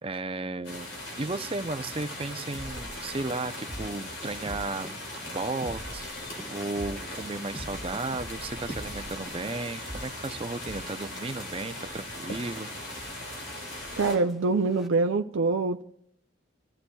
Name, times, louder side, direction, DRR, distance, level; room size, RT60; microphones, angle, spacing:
voice 1, 0.0-4.9 5.3-6.1 6.5-12.7, right 3 dB, 30° right, 0.6 m, -34 dB
sound 1, 0.6-14.2, left 1 dB, 70° left, 3.9 m, -39 dB
sound 2, 2.5-14.9, equal, ahead, 1.1 m, -44 dB
voice 2, 14.0-15.8, right 3 dB, 75° right, 0.5 m, -25 dB
30.0 x 14.0 x 2.3 m
head